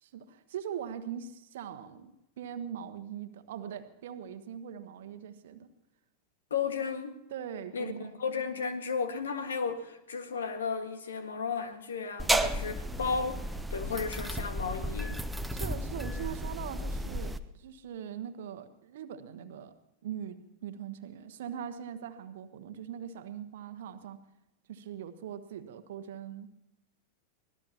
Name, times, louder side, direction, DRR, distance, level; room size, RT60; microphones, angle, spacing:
voice 1, 0.0-5.7 7.3-8.2 15.5-19.7 20.0-24.2 24.7-26.5, right 9 dB, 55° right, 1.3 m, -41 dB
voice 2, 6.5-7.2 7.7-13.5 13.7-15.2, left 5 dB, 65° left, 1.7 m, -34 dB
sound 1, 12.2-17.4, right 1 dB, 5° right, 0.8 m, -33 dB
25.0 x 18.0 x 2.9 m
figure-of-eight pair, 90°, 0 cm